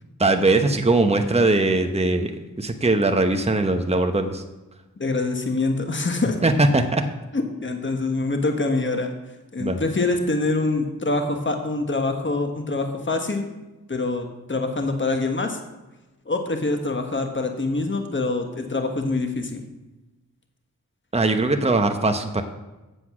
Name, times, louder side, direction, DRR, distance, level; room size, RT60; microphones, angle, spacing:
voice 1, 0.2-2.3 2.6-4.4 6.4-7.0 9.6-9.8 21.1-22.4, right 2 dB, 20° right, 6 dB, 0.9 m, -20 dB
voice 2, 5.0-6.4 7.3-9.1 9.5-13.5 13.9-15.6 16.3-19.6, left 3 dB, 35° left, 5 dB, 1.3 m, -25 dB
8.2 x 7.9 x 6.1 m, 1.1 s
wide cardioid pair, 50°, 34 cm